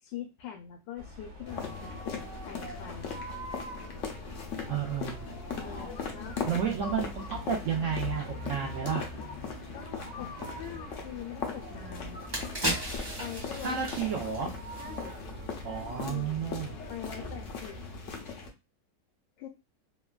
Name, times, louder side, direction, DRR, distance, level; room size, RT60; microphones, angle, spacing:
voice 1, 0.0-3.1 5.5-6.4 9.7-12.2 13.2-14.3 14.8-15.2 15.6-16.4 16.9-17.8 19.4-19.5, left 9 dB, 85° left, 3 dB, 1.2 m, -43 dB
sound 1, 1.0-18.0, left 1 dB, 70° right, 1.4 m, -45 dB
sound 2, 1.5-18.5, left 5 dB, 65° left, 0.7 m, -40 dB
voice 2, 4.7-5.3 6.5-9.1 13.6-14.5 15.6-16.8, right 7 dB, 90° right, -1 dB, 0.6 m, -31 dB
sound 3, 11.6-11.7 12.1-15.4 15.7-15.9, right 1 dB, 20° right, 0.6 m, -35 dB
3.3 x 2.2 x 2.2 m, 0.26 s
omnidirectional pair, 1.9 m